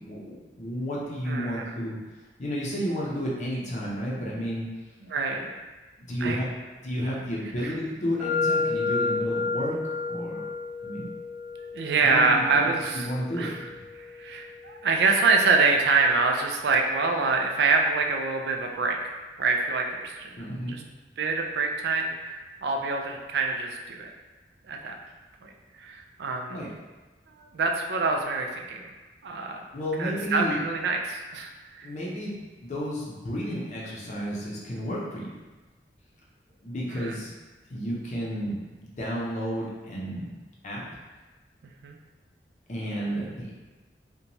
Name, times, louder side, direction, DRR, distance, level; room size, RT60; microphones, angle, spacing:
voice 1, 0.0-2.0 2.4-4.7 6.0-6.5 6.8-10.5 10.8-11.1 11.9-12.7 12.9-13.8 20.4-20.8 26.5-26.7 29.7-30.6 31.8-35.3 36.6-37.3 37.7-40.3 40.6-40.8 42.7-43.6, equal, 40° left, -5 dB, 0.5 m, -32 dB
voice 2, 1.3-1.6 5.1-5.5 6.2-6.4 7.6-7.7 11.7-13.1 13.4-13.5 14.2-19.1 19.4-20.8 21.2-24.1 24.7-25.0 25.4-25.5 25.8-26.6 27.4-28.8 29.2-29.7 30.0-31.9 36.9-37.1 41.8-42.0, right 4 dB, 75° right, 2 dB, 0.3 m, -25 dB
sound 1, 8.2-16.1, left 4 dB, 10° left, 0.8 m, -32 dB
2.9 x 2.2 x 2.6 m, 1.2 s
head